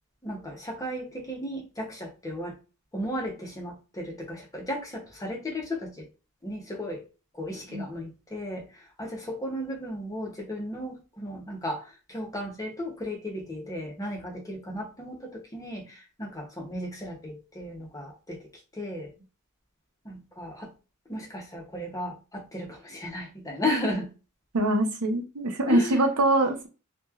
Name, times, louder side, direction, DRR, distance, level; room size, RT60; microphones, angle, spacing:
voice 1, 0.2-2.6 2.9-6.1 6.4-7.0 7.3-18.4 18.7-19.1 20.0-20.7 21.1-24.1 25.7-26.1, left 1 dB, 15° left, 1 dB, 0.7 m, -35 dB
voice 2, 24.5-26.7, right 2 dB, 85° right, 4 dB, 0.7 m, -24 dB
2.9 x 2.2 x 2.3 m, 0.32 s
head